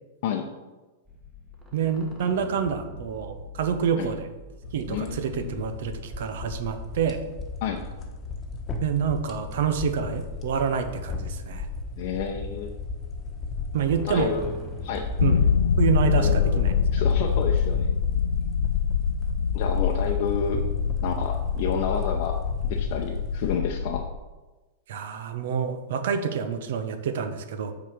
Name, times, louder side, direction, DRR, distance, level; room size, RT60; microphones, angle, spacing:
sound 1, 1.0-15.5, left 1 dB, 20° right, 1.5 m, -45 dB
voice 1, 1.7-4.3 4.7-7.2 8.8-11.7 13.7-14.3 15.2-15.4 15.8-16.7 24.9-27.7, right 7 dB, 70° right, 8 dB, 0.7 m, -27 dB
sound 2, 4.6-23.6, left 3 dB, 25° left, 1.1 m, -36 dB
voice 2, 4.9-5.6 7.6-7.8 12.0-12.7 14.0-15.1 16.2-16.6 16.9-17.9 19.5-20.6 21.0-24.1, left 6 dB, 55° left, 1 dB, 0.7 m, -30 dB
sound 3, 15.2-24.2, left 7 dB, 90° left, 0.3 m, -25 dB
5.9 x 4.1 x 6.0 m, 1.2 s
hypercardioid pair, 120°, 0 cm